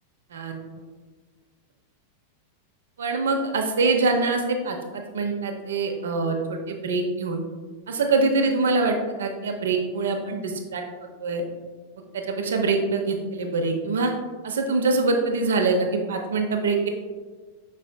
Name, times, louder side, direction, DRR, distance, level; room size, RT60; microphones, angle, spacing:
voice 1, 3.0-7.4 7.9-10.8 11.2-11.4 12.1-14.1 14.4-16.9, right 3 dB, 65° right, 4 dB, 0.6 m, -24 dB
5.8 x 4.1 x 2.2 m, 1.4 s
figure-of-eight pair, 90°, 0 cm